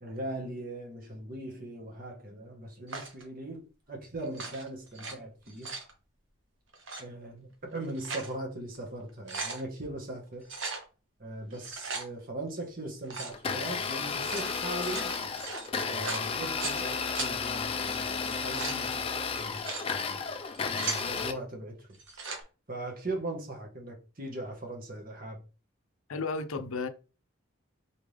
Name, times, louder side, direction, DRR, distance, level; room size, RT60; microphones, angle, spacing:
voice 1, 0.0-5.7 7.0-10.4 11.2-15.2 15.8-19.6 20.7-21.9 22.7-25.4, right 1 dB, 45° right, 1.3 m, -39 dB
sound 1, 2.9-3.2 4.2-5.1 5.5-5.9 6.7-7.0 7.7-8.3 8.7-8.8 9.1-9.6 10.4-10.8 11.5-12.1 13.0-13.4 14.1-16.8 17.1-17.3 18.2-18.8 19.4-19.9 20.4-21.1 21.9-22.4, right 4 dB, 65° right, 1.0 m, -38 dB
Domestic sounds home sounds, 13.3-21.3, left 5 dB, 25° left, 0.4 m, -33 dB
voice 2, 26.1-26.9, left 4 dB, 85° left, 0.6 m, -33 dB
4.2 x 3.5 x 3.3 m
head